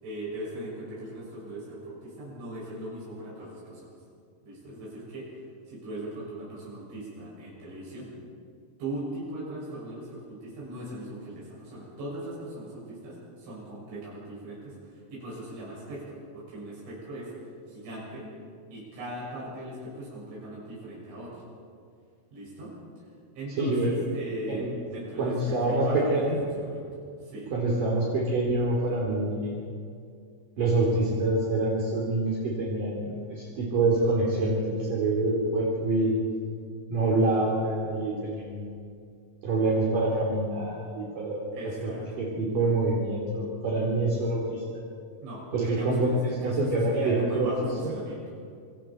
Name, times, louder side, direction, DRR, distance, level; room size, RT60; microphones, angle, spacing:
voice 1, 0.0-3.9 4.4-5.3 5.7-8.1 8.8-17.3 17.7-18.3 18.7-21.4 22.3-23.1 23.4-26.2 26.5-26.9 27.2-27.5 37.1-37.5 41.5-42.0 45.2-48.4, right 1 dB, 85° right, -7 dB, 9.1 m, -39 dB
voice 2, 23.6-23.9 24.5-24.7 25.2-25.9 26.1-26.4 27.5-29.6 30.6-36.1 36.9-38.7 39.4-41.4 41.8-41.9 42.2-44.6 45.5-47.5, right 2 dB, 50° right, -4 dB, 4.3 m, -26 dB
28.0 x 27.5 x 4.5 m, 2.3 s
omnidirectional pair, 5.2 m